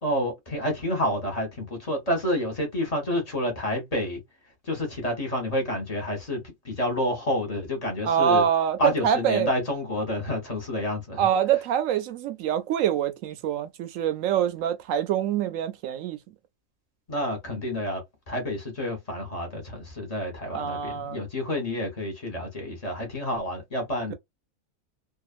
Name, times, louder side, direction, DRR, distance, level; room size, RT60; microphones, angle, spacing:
voice 1, 0.0-4.2 4.6-8.4 8.8-11.3 17.1-18.0 18.3-24.1, left 1 dB, 30° left, 1.0 m, -29 dB
voice 2, 8.0-9.5 11.2-16.2 20.5-21.2, right 9 dB, 70° right, 0.9 m, -25 dB
2.7 x 2.4 x 2.4 m
omnidirectional pair, 1.6 m